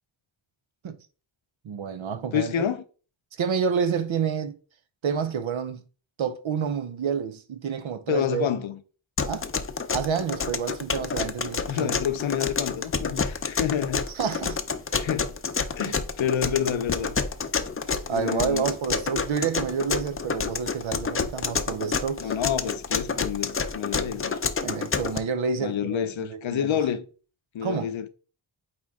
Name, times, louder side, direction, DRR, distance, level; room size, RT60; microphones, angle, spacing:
voice 1, 1.6-2.6 3.4-4.6 5.0-5.8 6.2-8.5 9.2-9.5 9.9-12.0 14.1-14.6 15.8-15.9 18.1-22.3 24.6-26.8 27.6-27.9, right 6 dB, 80° right, 0.8 m, -29 dB
voice 2, 2.3-2.8 8.1-8.8 11.7-14.0 14.9-15.3 15.8-17.2 18.1-18.7 22.2-24.4 25.6-27.0 27.5-28.1, left 9 dB, 75° left, 0.7 m, -28 dB
sound 1, 9.2-25.2, left 5 dB, 30° left, 0.5 m, -28 dB
8.7 x 3.0 x 3.6 m
wide cardioid pair, 75°, 47 cm